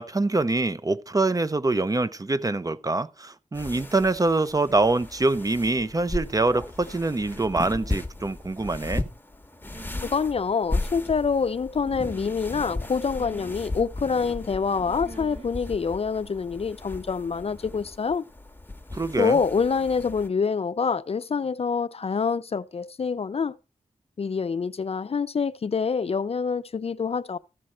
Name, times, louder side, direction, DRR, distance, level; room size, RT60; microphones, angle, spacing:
voice 1, 0.0-9.1 18.9-19.4, right 2 dB, 25° right, 0.5 m, -25 dB
sound 1, 3.5-20.3, left 2 dB, 15° left, 1.1 m, -36 dB
sound 2, 7.3-8.0 9.7-10.2 11.8-12.4 13.1-13.6 15.0-15.5 15.8-16.1, right 2 dB, 50° right, 1.3 m, -45 dB
voice 2, 10.0-18.2 19.2-23.5 24.2-27.4, left 5 dB, 50° left, 0.4 m, -26 dB
14.0 x 6.2 x 4.2 m
wide cardioid pair, 70°, 13 cm